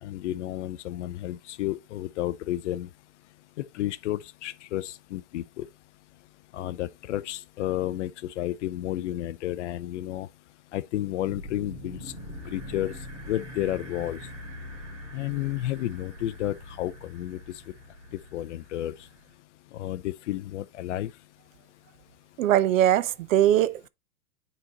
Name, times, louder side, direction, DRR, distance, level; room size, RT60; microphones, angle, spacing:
voice 1, 0.0-2.9 3.7-5.7 6.5-10.3 10.7-12.0 12.5-12.9 13.3-14.2 15.1-17.4 18.3-18.9 19.7-21.1, left 14 dB, 50° left, 0.5 m, -31 dB
sound 1, 11.2-19.3, left 1 dB, 30° right, 2.3 m, -43 dB
voice 2, 22.4-23.9, right 12 dB, 55° right, 0.6 m, -21 dB
9.7 x 4.0 x 2.9 m
hypercardioid pair, 130°, 49 cm